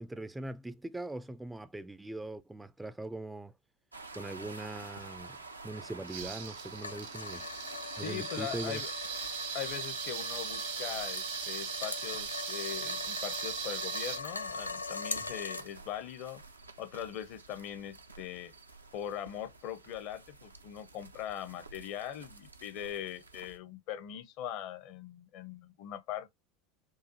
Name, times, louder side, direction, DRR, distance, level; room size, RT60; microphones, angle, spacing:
voice 1, 0.0-3.5 4.1-5.4 5.6-7.5 8.0-8.9, right 2 dB, 10° right, 0.3 m, -41 dB
sound 1, 3.9-23.6, right 3 dB, 90° right, 0.5 m, -50 dB
sound 2, 6.1-14.2, right 8 dB, 70° right, 1.0 m, -39 dB
sound 3, 6.8-15.6, left 3 dB, 90° left, 0.3 m, -41 dB
voice 2, 8.0-8.9 9.5-16.4 16.8-18.5 18.9-26.3, left 10 dB, 55° left, 0.7 m, -41 dB
4.8 x 2.4 x 2.7 m
figure-of-eight pair, 75°, 0 cm